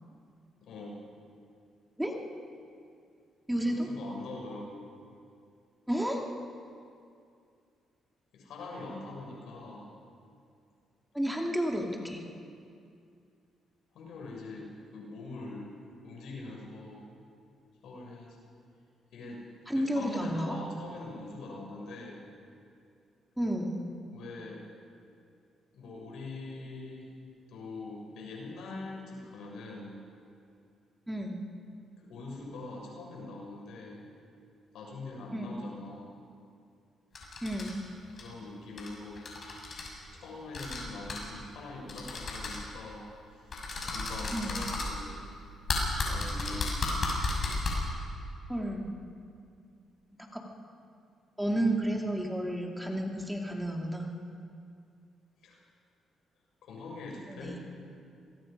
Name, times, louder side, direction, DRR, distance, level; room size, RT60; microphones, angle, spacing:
voice 1, 0.6-1.0 3.7-4.9 8.3-9.9 13.9-15.8 16.0-17.1 17.8-18.4 19.1-19.5 19.7-22.2 24.1-24.6 25.7-27.1 27.5-30.0 32.1-34.1 34.7-36.1 38.1-39.3 40.1-45.3 46.1-46.9 55.4-55.6 56.6-57.6, left 2 dB, 80° left, -1 dB, 7.0 m, -43 dB
voice 2, 3.5-3.9 5.9-6.2 11.1-12.2 19.7-20.6 23.4-23.8 31.1-31.4 35.3-35.6 37.4-37.8 44.3-44.5 46.2-46.9 48.5-48.9 50.2-50.4 51.4-54.1 57.3-57.6, right 1 dB, 5° right, 1 dB, 2.4 m, -32 dB
sound 1, 37.2-37.7 38.1-38.2 38.8-38.9 39.2-39.9 40.5-40.8 41.1-41.2 41.9-42.6 43.5-44.9 45.7-47.7, left 3 dB, 45° left, 6.5 m, -33 dB
26.5 x 22.0 x 5.4 m, 2.4 s
cardioid pair, 90°, 0 cm